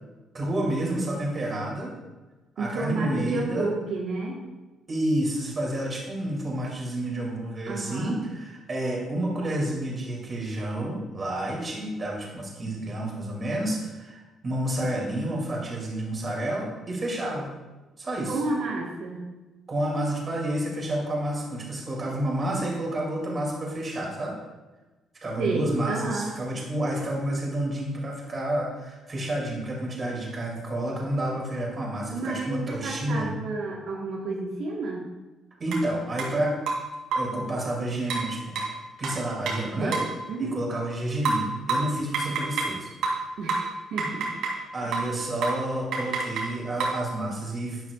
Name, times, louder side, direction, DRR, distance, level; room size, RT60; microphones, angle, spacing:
voice 1, 0.3-1.9 2.6-3.7 4.9-17.5 18.0-18.3 19.7-24.4 25.2-33.3 35.6-36.6 37.1-38.6 39.0-39.9 40.4-42.9 44.7-47.8, right 1 dB, 25° right, -2 dB, 2.7 m, -29 dB
voice 2, 2.6-4.4 7.7-8.2 18.3-19.3 25.4-26.3 32.1-35.1 39.8-40.0 40.3-40.6 43.4-44.3 44.8-44.9, right 2 dB, 65° right, -3 dB, 1.5 m, -31 dB
sound 1, 35.7-35.8 36.2-36.3 36.7-37.4 38.1-40.2 41.3-42.8 43.0-44.6 44.9-45.2 45.4-45.7 45.9-47.1, right 4 dB, 80° right, 2.7 m, -29 dB
11.5 x 10.5 x 2.4 m, 1.2 s
cardioid pair, 175°, 0 cm